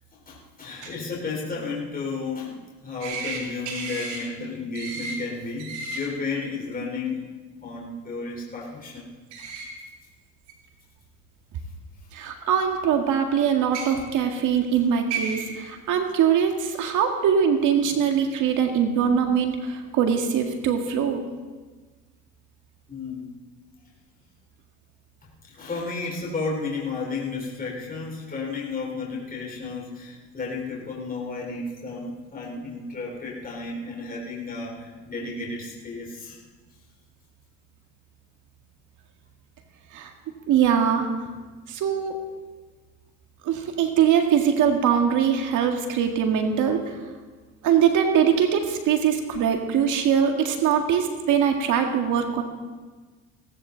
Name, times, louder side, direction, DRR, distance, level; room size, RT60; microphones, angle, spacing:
voice 1, 0.1-7.3 7.6-9.1 22.9-23.2 25.2-36.4, left 3 dB, 25° left, -3 dB, 4.0 m, -33 dB
sound 1, 3.0-3.4 3.7-4.2 4.7-5.2 5.6-6.0 9.3-9.7 10.5-10.6 11.8-11.9 13.6-13.9 14.7-14.8 15.1-15.5, right 4 dB, 90° right, 2.9 m, -32 dB
voice 2, 12.1-21.2 39.9-40.1 40.5-41.3 41.7-42.2 43.4-47.0 47.6-52.4, right 8 dB, 60° right, 4 dB, 2.0 m, -22 dB
17.5 x 15.0 x 4.0 m, 1.3 s
supercardioid pair, 80°, 33 cm